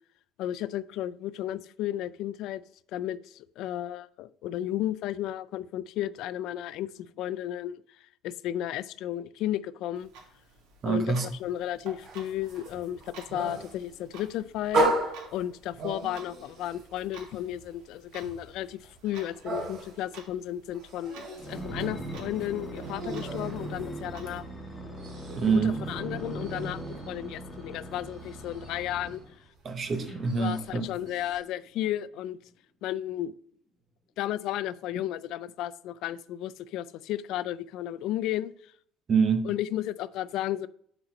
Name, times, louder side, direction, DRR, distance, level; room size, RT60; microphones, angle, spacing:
voice 1, 0.4-2.6 2.9-10.1 10.8-14.9 15.3-24.4 25.5-29.2 30.4-32.4 32.8-33.3 34.2-38.7 39.4-40.7, left 12 dB, 65° left, 0.3 m, -33 dB
Clock, 9.9-24.4, right 4 dB, 90° right, 2.0 m, -52 dB
voice 2, 10.8-11.3 25.4-25.8 29.6-30.9 39.1-39.5, right 5 dB, 30° right, 0.8 m, -25 dB
sound 1, 12.0-24.5 24.7-31.4, right 1 dB, 50° right, 2.5 m, -36 dB
sound 2, 21.4-29.3 29.9-31.2 31.8-31.9, right 1 dB, 10° left, 1.5 m, -39 dB
7.7 x 4.5 x 5.2 m
cardioid pair, 155°, 0 cm